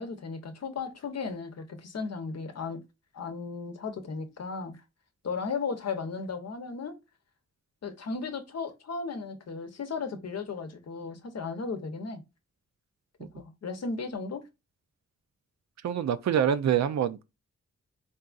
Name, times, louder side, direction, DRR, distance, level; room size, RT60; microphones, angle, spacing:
voice 1, 0.0-2.8 3.1-4.8 5.2-7.0 7.8-12.2 13.2-14.5, left 4 dB, 60° left, 0.7 m, -35 dB
voice 2, 15.8-17.2, right 9 dB, 70° right, 0.4 m, -25 dB
4.0 x 2.5 x 2.3 m
cardioid pair, 60°, 29 cm